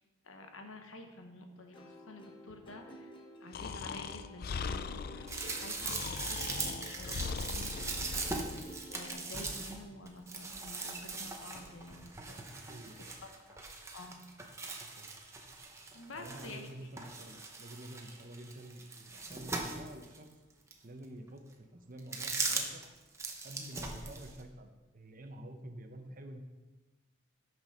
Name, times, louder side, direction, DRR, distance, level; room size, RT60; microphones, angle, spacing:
voice 1, 0.2-3.1 3.4-14.2 14.6-14.7 15.9-16.9, left 1 dB, 80° left, 4 dB, 1.2 m, -50 dB
Plucked string instrument, 1.7-9.1, equal, 25° left, 1.0 m, -53 dB
Breathing, 3.5-8.6, left 5 dB, 50° left, 0.4 m, -40 dB
sound 1, 5.3-16.7 17.0-20.2 20.7-20.8 22.0-22.9 23.1-24.4, right 3 dB, 15° right, 0.8 m, -40 dB
voice 2, 12.5-13.2 14.8-15.2 16.1-20.3 20.8-22.8 23.4-26.4, right 1 dB, 45° right, 6 dB, 0.8 m, -49 dB
9.0 x 6.1 x 5.3 m, 1.2 s
head